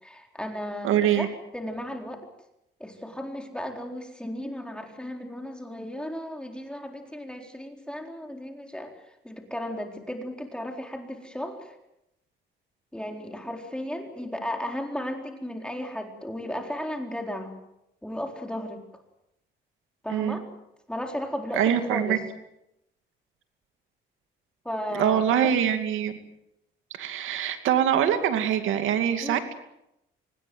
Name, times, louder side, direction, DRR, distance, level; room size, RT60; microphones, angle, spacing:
voice 1, 0.0-2.3 2.8-8.9 9.2-11.8 12.9-17.6 18.0-18.8 20.0-20.5 20.9-22.2 24.6-25.5 29.2-29.4, left 1 dB, 5° left, 3 dB, 4.2 m, -35 dB
voice 2, 0.8-1.3 20.1-20.4 21.5-22.2 24.9-26.1 27.0-29.5, right 9 dB, 85° right, 8 dB, 2.5 m, -24 dB
26.0 x 19.5 x 8.0 m, 0.84 s
cardioid pair, 90°, 20 cm